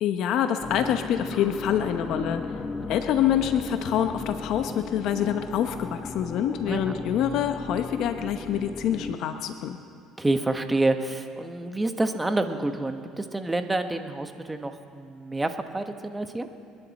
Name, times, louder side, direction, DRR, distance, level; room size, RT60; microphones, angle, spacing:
voice 1, 0.0-2.4 2.9-9.8, left 9 dB, 65° left, 8 dB, 0.9 m, -26 dB
sound 1, 0.6-9.2, left 4 dB, 35° left, 1.2 m, -36 dB
voice 2, 2.5-2.9 6.7-7.0 10.2-16.5, right 2 dB, 15° right, 7 dB, 1.2 m, -28 dB
29.0 x 10.5 x 4.2 m, 2.4 s
supercardioid pair, 85°, 0 cm